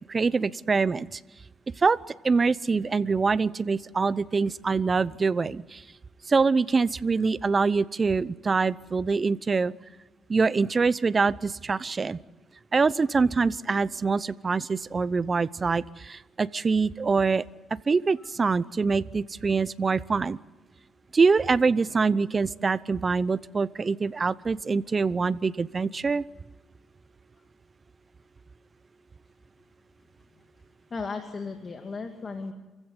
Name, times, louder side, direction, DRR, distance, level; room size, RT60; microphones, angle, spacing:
voice 1, 0.1-1.2 1.8-2.0 2.2-5.8 6.3-9.7 10.3-12.2 12.7-17.4 17.9-20.4 21.1-26.2, right 4 dB, 35° right, 19 dB, 0.8 m, -24 dB
voice 2, 30.9-32.5, left 4 dB, 35° left, 5 dB, 2.5 m, -35 dB
28.0 x 15.5 x 9.9 m, 1.1 s
cardioid pair, 90°, 0 cm